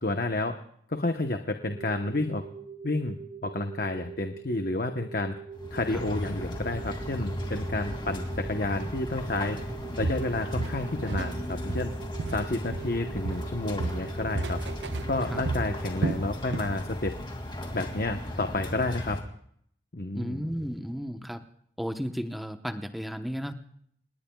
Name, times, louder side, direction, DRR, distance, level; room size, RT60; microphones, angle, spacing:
voice 1, 0.0-0.5 0.9-2.4 2.8-3.2 3.4-5.4 5.7-9.6 10.0-11.9 12.3-14.6 15.1-17.1 17.7-19.2 19.9-20.4, left 2 dB, 50° left, 6 dB, 1.0 m, -30 dB
sound 1, 1.7-15.9, right 6 dB, 45° right, 2.1 m, -43 dB
sound 2, 5.5-19.2, left 1 dB, 25° left, 2.3 m, -36 dB
Walk footsteps, 9.4-9.7 10.0-11.4 11.7-13.0 13.3-16.8 17.1-17.3 17.8-17.9, right 3 dB, 75° right, 0.7 m, -33 dB
voice 2, 20.1-21.4 21.8-23.5, equal, ahead, 7 dB, 0.9 m, -34 dB
29.0 x 19.0 x 2.3 m, 0.66 s
head